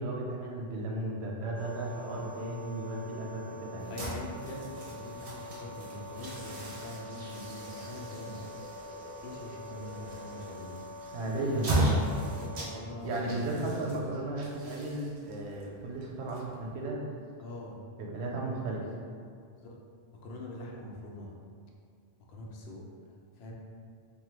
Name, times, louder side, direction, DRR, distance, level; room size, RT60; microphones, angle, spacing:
voice 1, 0.0-4.0 11.1-12.0 13.0-17.0 18.0-18.8, right 2 dB, 85° right, -2 dB, 0.9 m, -35 dB
sound 1, 1.5-12.7, left 1 dB, 10° left, 1.4 m, -45 dB
voice 2, 1.9-2.3 3.9-8.4 9.2-10.8 12.4-13.9 17.4-17.8 19.6-19.8 20.1-21.3 22.3-22.9 23.4-23.5, left 1 dB, 75° left, -2 dB, 0.8 m, -43 dB
sound 2, 3.8-16.9, right 1 dB, 45° right, 0.5 m, -37 dB
sound 3, 5.9-10.6, left 1 dB, 40° left, 0.9 m, -52 dB
3.0 x 2.2 x 3.1 m, 2.2 s
omnidirectional pair, 1.1 m